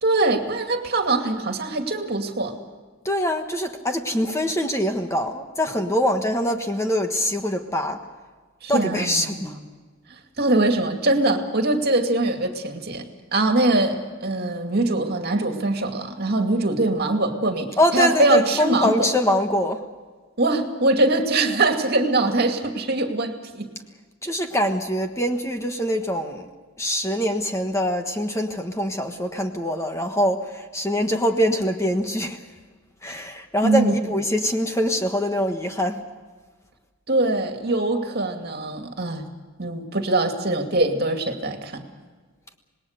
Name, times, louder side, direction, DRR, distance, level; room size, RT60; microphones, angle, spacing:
voice 1, 0.0-2.6 8.6-9.6 10.4-13.1 13.3-19.1 20.4-23.7 33.6-33.9 37.1-39.2 39.6-41.9, right 2 dB, 50° right, 5 dB, 2.4 m, -22 dB
voice 2, 3.0-8.0 8.7-9.6 17.8-19.8 24.2-26.5 26.8-32.4 33.0-36.0, equal, 15° left, 5 dB, 1.4 m, -24 dB
26.5 x 20.0 x 6.7 m, 1.4 s
head